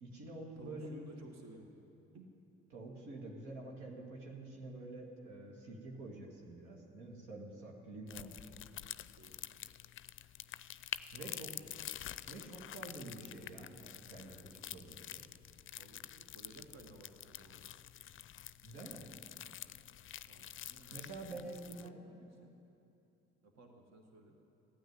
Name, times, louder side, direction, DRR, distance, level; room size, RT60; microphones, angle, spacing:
voice 1, 0.0-0.9 2.7-8.3 11.1-11.5 12.3-15.2 18.6-19.1 20.9-22.0, right 2 dB, 80° right, 0 dB, 2.1 m, -48 dB
voice 2, 0.6-1.7 2.1-2.3 9.2-9.4 11.2-11.7 15.8-17.7 20.3-20.9 21.3-22.6 23.4-24.4, right 2 dB, 55° right, 2 dB, 1.8 m, -56 dB
sound 1, 8.1-21.9, left 11 dB, 40° left, 0.5 m, -48 dB
15.0 x 9.4 x 9.6 m, 2.8 s
hypercardioid pair, 60°, 32 cm